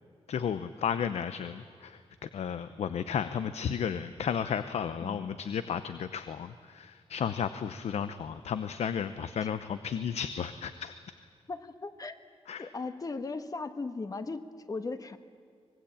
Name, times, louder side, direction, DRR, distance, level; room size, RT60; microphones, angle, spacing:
voice 1, 0.3-10.9 12.5-12.7, left 7 dB, 85° left, 11 dB, 0.8 m, -33 dB
voice 2, 11.5-12.2 12.6-15.2, left 3 dB, 35° left, 9 dB, 1.3 m, -37 dB
25.0 x 20.0 x 8.7 m, 2.2 s
wide cardioid pair, 115°, 11 cm